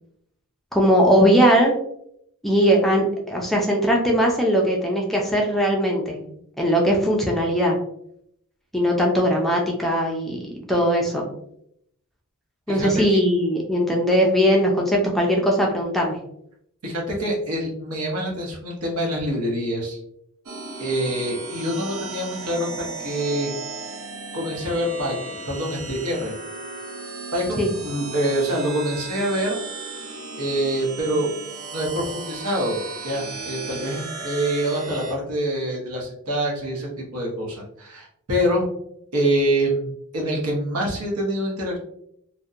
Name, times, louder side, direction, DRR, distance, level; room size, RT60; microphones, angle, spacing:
voice 1, 0.7-1.7 2.4-6.3 6.6-7.8 8.7-11.2 12.7-16.2 27.6-27.7, equal, ahead, -1 dB, 0.3 m, -20 dB
voice 2, 16.8-20.0 20.8-23.5 24.3-25.2 25.5-26.3 27.3-29.6 30.4-31.3 31.7-38.7 39.1-41.8, right 1 dB, 85° right, -2 dB, 0.8 m, -25 dB
sound 1, 20.5-35.1, right 3 dB, 65° right, 0.5 m, -35 dB
2.7 x 2.1 x 2.4 m, 0.73 s
head